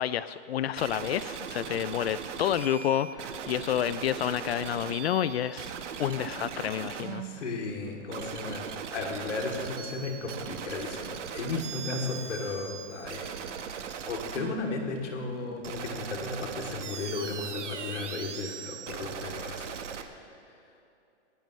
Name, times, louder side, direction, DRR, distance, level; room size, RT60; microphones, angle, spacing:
voice 1, 0.0-5.7 6.0-7.2, left 10 dB, 60° left, 15 dB, 0.5 m, -29 dB
sound 1, 0.8-20.0, right 7 dB, 80° right, 1.5 m, -39 dB
voice 2, 7.2-8.7 8.9-13.4 13.7-19.8 20.1-20.3, left 3 dB, 90° left, 1 dB, 2.9 m, -35 dB
19.5 x 18.5 x 3.2 m, 2.8 s
hypercardioid pair, 170°, 35 cm